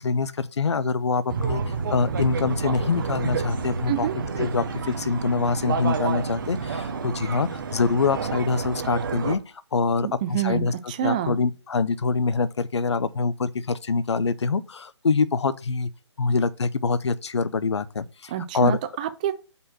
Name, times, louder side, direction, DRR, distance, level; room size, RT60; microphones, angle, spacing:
voice 1, 0.0-4.1 4.4-9.4 9.7-10.7 11.0-15.9 16.2-18.8, left 4 dB, 70° left, 0.6 m, -25 dB
sound 1, 1.3-9.4, right 5 dB, 45° right, 1.1 m, -29 dB
voice 2, 10.0-11.4 18.3-19.3, right 12 dB, 15° right, 0.4 m, -27 dB
5.3 x 4.2 x 6.1 m
figure-of-eight pair, 150°, 15 cm